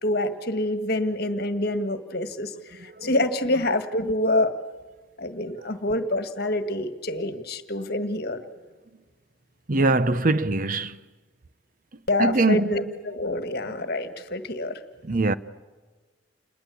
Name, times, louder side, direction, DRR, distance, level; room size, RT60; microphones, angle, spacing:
voice 1, 0.0-4.5 5.2-8.4 12.1-14.8, left 1 dB, 50° left, 1.7 m, -26 dB
voice 2, 2.8-3.1 9.7-11.0 12.2-12.9 15.0-15.3, right 2 dB, 40° right, 0.7 m, -23 dB
28.5 x 21.0 x 8.4 m
head